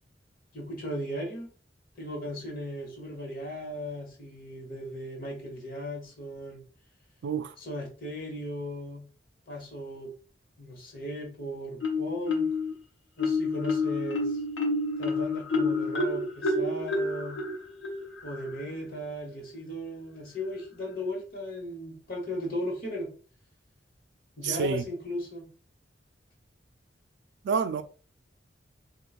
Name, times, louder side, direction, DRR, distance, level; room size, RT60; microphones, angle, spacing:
voice 1, 0.5-1.5 2.0-6.6 7.6-9.1 9.5-10.1 10.6-12.5 13.2-14.4 15.0-17.4 18.2-23.1 24.4-25.5, equal, 50° left, 1.2 m, -37 dB
Marimba xylophone, 11.8-12.7 13.2-18.7, left 3 dB, 85° left, 0.9 m, -29 dB
voice 2, 24.4-24.8 27.4-27.8, right 5 dB, 65° right, 0.4 m, -28 dB
4.5 x 2.3 x 2.4 m
head